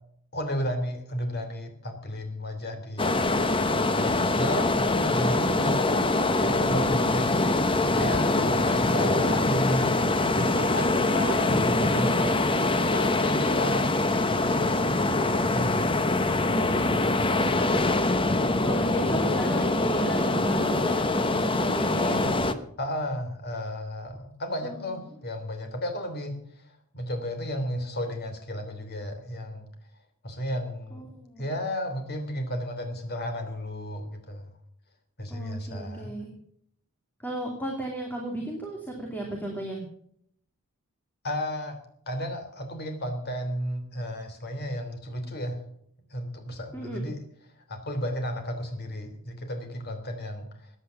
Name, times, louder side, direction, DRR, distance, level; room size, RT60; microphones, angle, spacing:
voice 1, 0.3-3.2 3.9-7.4 8.0-12.4 12.6-15.9 16.6-17.6 22.8-26.4 26.9-29.7 30.2-31.1 31.4-34.5 35.2-36.1 41.2-41.8 42.1-45.6 46.1-47.2 47.7-50.7, equal, 50° left, 6 dB, 3.1 m, -33 dB
sound 1, 3.0-22.5, left 2 dB, 25° left, 0.9 m, -24 dB
voice 2, 10.8-12.2 16.3-17.2 18.6-22.3 24.6-24.9 30.9-31.4 35.3-36.3 37.2-39.8 46.7-47.0, right 1 dB, 10° left, 0 dB, 2.7 m, -35 dB
15.0 x 10.0 x 6.9 m, 0.68 s
head